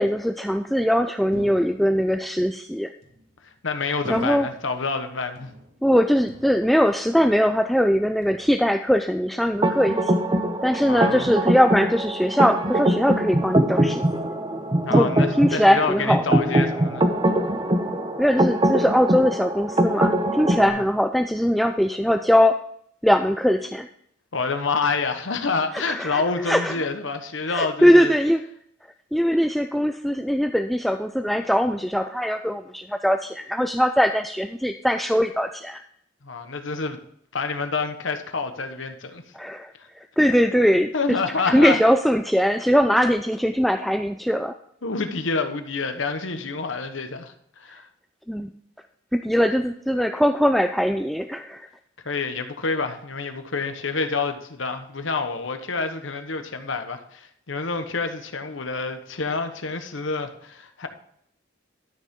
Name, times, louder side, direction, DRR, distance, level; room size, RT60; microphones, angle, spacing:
voice 1, 0.0-2.9 4.1-4.5 5.8-10.1 10.6-14.0 14.9-16.3 18.2-22.6 23.0-23.9 25.7-26.8 27.5-28.4 29.1-35.8 39.3-44.6 47.7-47.8 48.3-48.5 49.1-51.7, equal, ahead, 6 dB, 0.3 m, -21 dB
sound 1, 1.3-2.2 3.0-3.5 4.0-4.8 5.4-6.0 6.3-7.1 7.3-7.8 8.2-8.8, right 1 dB, 60° right, 2.4 m, -41 dB
voice 2, 3.4-5.5 10.8-11.3 14.8-17.0 20.6-20.8 24.3-28.1 36.2-37.0 37.3-39.2 39.8-39.9 40.9-41.8 44.8-47.9 52.0-60.9, left 4 dB, 80° left, 8 dB, 1.2 m, -28 dB
sound 2, 9.6-20.7, right 1 dB, 25° right, 0.9 m, -22 dB
12.0 x 6.7 x 3.7 m, 0.67 s
head